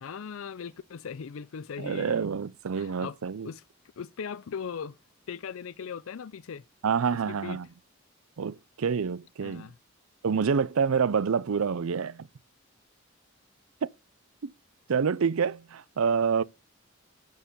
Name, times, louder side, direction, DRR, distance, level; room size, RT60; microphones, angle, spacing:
voice 1, 0.0-2.3 2.8-3.2 3.4-3.6 4.0-5.0 5.3-6.6 7.3-7.6 9.4-9.7, left 6 dB, 75° left, 0.4 m, -39 dB
voice 2, 1.8-3.5 6.8-7.7 8.4-9.7 10.2-12.3 14.4-14.5 14.9-16.4, right 6 dB, 85° right, 0.5 m, -27 dB
11.0 x 4.6 x 6.8 m
head